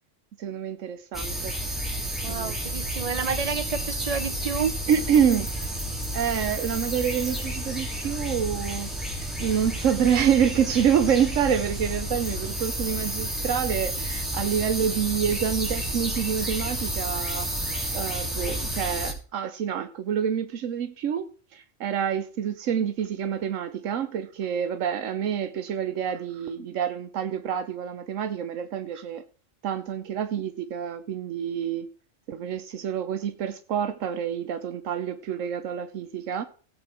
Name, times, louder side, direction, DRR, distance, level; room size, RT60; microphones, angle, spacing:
voice 1, 0.4-1.5 2.3-2.5 4.9-5.7 6.1-8.9 9.4-17.5 17.9-29.2 29.6-31.9 32.3-36.5, right 8 dB, 85° right, 1.1 m, -27 dB
sound 1, 1.1-19.1, right 1 dB, ahead, 3.3 m, -31 dB
voice 2, 2.2-4.7, right 6 dB, 45° right, 0.5 m, -29 dB
17.0 x 8.0 x 4.4 m
omnidirectional pair, 1.3 m